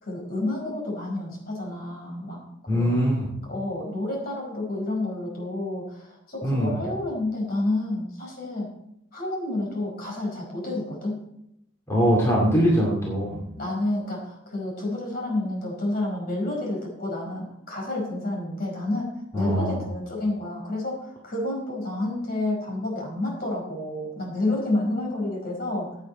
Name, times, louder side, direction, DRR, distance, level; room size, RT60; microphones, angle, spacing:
voice 1, 0.0-3.1 3.4-8.7 9.1-11.2 13.6-25.9, left 2 dB, 45° left, -1 dB, 4.8 m, -30 dB
voice 2, 2.7-3.3 6.4-6.8 11.9-13.4 19.3-19.9, equal, 15° left, -4 dB, 2.2 m, -22 dB
16.0 x 8.6 x 4.3 m, 0.78 s
head